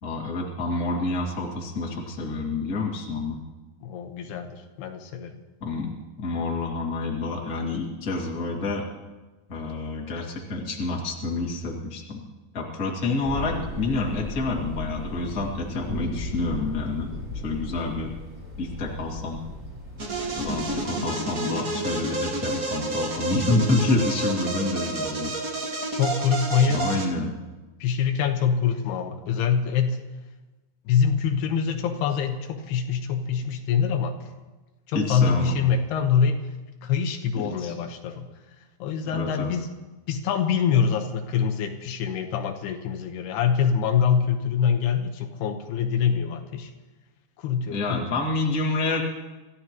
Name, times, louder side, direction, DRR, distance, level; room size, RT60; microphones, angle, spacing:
voice 1, 0.0-3.4 5.6-8.9 9.5-12.2 12.5-17.1 17.4-18.1 18.6-19.4 20.4-25.3 26.7-27.3 34.9-35.6 37.4-37.7 39.1-39.5 47.7-49.0, left 3 dB, 30° left, -2 dB, 2.1 m, -28 dB
voice 2, 3.8-5.4 25.9-26.9 27.8-30.0 30.9-34.3 34.9-36.4 36.8-38.3 38.8-39.7 40.1-46.7 47.4-48.0, left 7 dB, 90° left, 5 dB, 3.2 m, -24 dB
sound 1, 13.2-20.8, left 2 dB, 5° right, 3.2 m, -36 dB
sound 2, 20.0-27.1, right 2 dB, 45° right, 1.2 m, -30 dB
27.0 x 14.5 x 3.0 m, 1.2 s
omnidirectional pair, 4.5 m